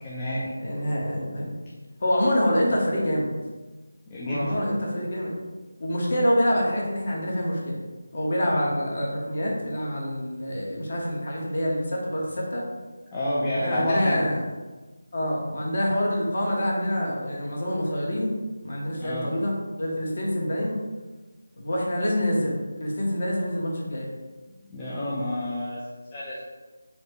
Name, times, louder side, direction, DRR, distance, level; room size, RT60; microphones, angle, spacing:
voice 1, 0.0-0.5 4.1-4.6 13.1-14.2 19.0-19.3 24.5-25.8 26.1-26.4, left 1 dB, 20° left, -8 dB, 0.6 m, -29 dB
voice 2, 0.6-1.5 2.0-3.3 4.3-5.3 5.8-7.8 8.1-12.6 13.6-14.4 15.1-18.3 18.6-20.7 21.6-24.1, equal, 50° left, -3 dB, 1.3 m, -26 dB
4.7 x 2.2 x 4.7 m, 1.2 s
figure-of-eight pair, 165°, 0 cm